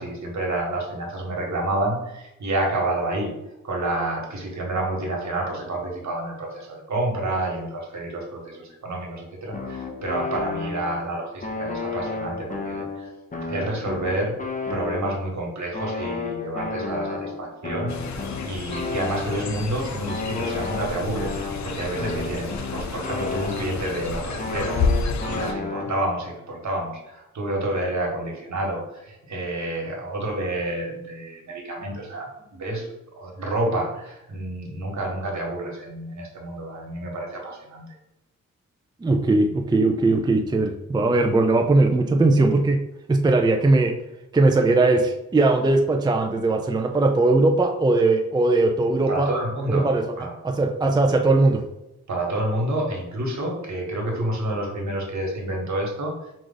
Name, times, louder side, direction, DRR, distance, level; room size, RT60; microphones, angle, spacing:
voice 1, 0.0-3.3 3.6-13.1 13.5-14.3 14.7-21.4 21.6-32.9 33.2-37.9 49.1-49.9 50.2-50.3 52.1-56.2, right 1 dB, 65° right, 0 dB, 1.4 m, -29 dB
sound 1, 9.5-11.1 11.4-15.4 15.7-19.6 20.1-24.0 24.4-26.2, left 4 dB, 25° left, 0.7 m, -32 dB
Fowl, 17.9-25.5, left 4 dB, 65° left, 0.6 m, -30 dB
voice 2, 39.0-42.8 43.1-43.9 44.3-49.3 49.7-50.2 50.4-51.6, right 2 dB, 15° right, 3 dB, 0.4 m, -19 dB
4.8 x 2.5 x 3.9 m, 0.91 s
cardioid pair, 75°, 31 cm